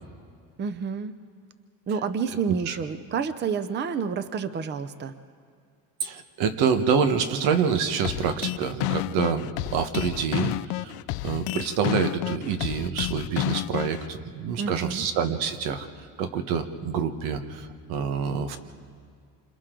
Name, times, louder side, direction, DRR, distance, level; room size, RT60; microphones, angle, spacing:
voice 1, 0.6-1.1 1.9-5.1 14.6-15.0, right 6 dB, 30° right, 12 dB, 0.7 m, -29 dB
voice 2, 6.0-15.9 16.2-18.6, right 6 dB, 85° right, 8 dB, 1.3 m, -27 dB
sound 1, 8.0-14.1, left 18 dB, 80° left, 0.5 m, -30 dB
28.0 x 26.5 x 3.9 m, 2.2 s
cardioid pair, 135°, 37 cm